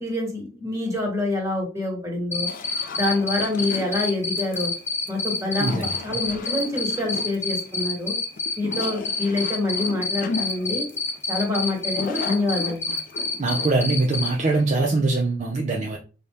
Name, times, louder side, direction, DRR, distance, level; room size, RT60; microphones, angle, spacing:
voice 1, 0.0-2.5 2.9-4.7 5.1-8.1 8.6-10.8 11.3-13.0, left 2 dB, 15° right, -1 dB, 1.2 m, -26 dB
Cricket, 2.3-14.3, left 3 dB, 10° left, 1.1 m, -27 dB
sound 1, 2.5-14.6, left 4 dB, 45° left, 0.4 m, -37 dB
voice 2, 5.6-6.0 13.4-16.0, right 3 dB, 40° right, -1 dB, 0.4 m, -22 dB
4.1 x 2.1 x 3.4 m, 0.34 s
head